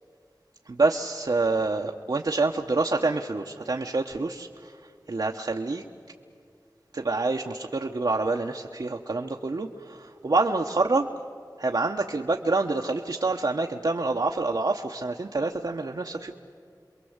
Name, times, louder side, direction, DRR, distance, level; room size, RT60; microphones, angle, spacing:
voice 1, 0.7-4.8 5.1-5.8 6.9-11.1 11.6-16.4, right 3 dB, 70° right, 2 dB, 1.0 m, -27 dB
28.5 x 23.0 x 8.0 m, 2.2 s
wide cardioid pair, 60°, 7 cm